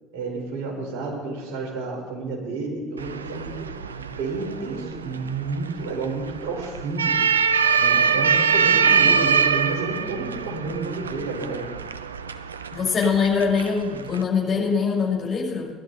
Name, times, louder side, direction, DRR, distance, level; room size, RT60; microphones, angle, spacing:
voice 1, 0.1-3.7 4.0-7.1 7.8-11.7, right 3 dB, 60° right, -2 dB, 4.5 m, -30 dB
sound 1, 3.0-14.2, right 6 dB, 80° right, 0.4 m, -24 dB
voice 2, 12.7-15.7, left 5 dB, 35° left, -2 dB, 5.7 m, -23 dB
20.0 x 12.5 x 4.1 m, 1.4 s
figure-of-eight pair, 60°, 0 cm